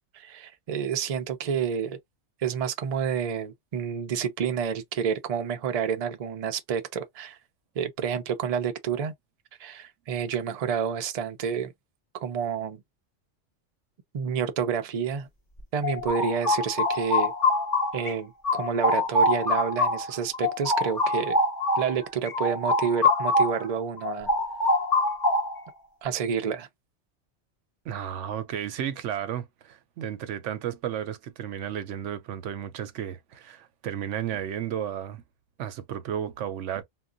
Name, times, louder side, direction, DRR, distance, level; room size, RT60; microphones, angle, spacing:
voice 1, 0.1-2.0 2.4-7.4 7.8-9.1 9.6-11.7 12.1-12.8 14.1-15.3 15.7-17.3 17.9-21.4 21.8-24.3 26.0-26.7, right 7 dB, 45° right, 0.5 m, -29 dB
sound 1, 15.6-18.1 18.4-23.7 24.0-25.7, left 2 dB, 20° left, 0.8 m, -25 dB
voice 2, 27.9-35.2 35.6-36.8, right 10 dB, 85° right, 1.0 m, -33 dB
2.3 x 2.2 x 3.7 m
omnidirectional pair, 1.2 m